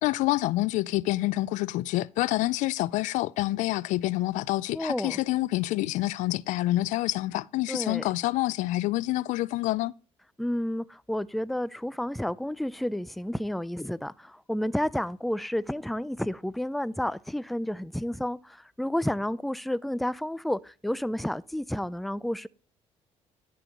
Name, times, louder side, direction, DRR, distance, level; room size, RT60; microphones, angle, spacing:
voice 1, 0.0-9.9, left 17 dB, 75° left, 0.4 m, -27 dB
voice 2, 4.7-5.2 7.7-8.1 10.4-22.5, left 1 dB, ahead, 0.4 m, -31 dB
11.0 x 4.6 x 5.2 m
supercardioid pair, 75°, 13 cm